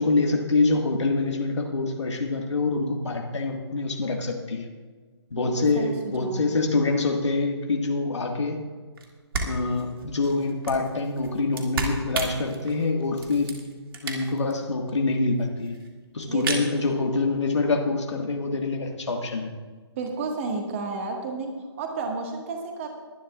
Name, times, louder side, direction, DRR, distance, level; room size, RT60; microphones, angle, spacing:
voice 1, 0.0-4.7 5.3-8.6 9.4-13.6 14.0-15.8 16.1-19.5, left 3 dB, 85° left, 2 dB, 1.7 m, -25 dB
voice 2, 5.3-6.6 16.3-16.6 20.0-22.9, right 3 dB, 30° right, 2 dB, 1.7 m, -32 dB
sound 1, 9.0-9.1 9.3-14.5 14.9-15.0 15.1-15.2 15.4-15.9 16.2-16.7, right 3 dB, 55° right, 2.2 m, -33 dB
22.0 x 11.0 x 2.4 m, 1.5 s
hypercardioid pair, 160°, 14 cm